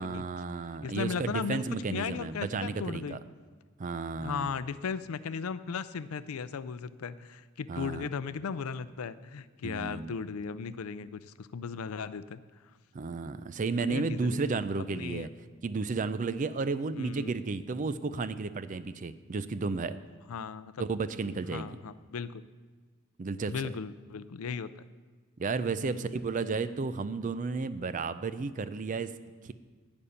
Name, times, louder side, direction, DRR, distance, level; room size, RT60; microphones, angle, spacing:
voice 1, 0.0-3.2 3.8-4.5 7.7-8.1 9.6-10.1 12.9-15.3 15.6-20.0 20.8-21.8 23.2-23.5 25.4-29.1 29.4-29.5, right 4 dB, 35° right, 13 dB, 0.4 m, -33 dB
voice 2, 0.8-3.2 4.2-12.4 13.8-14.4 14.9-15.3 17.0-17.3 20.3-20.9 21.5-22.4 23.5-24.7 25.8-26.2, left 6 dB, 80° left, 15 dB, 0.5 m, -36 dB
11.0 x 5.3 x 8.7 m, 1.4 s
head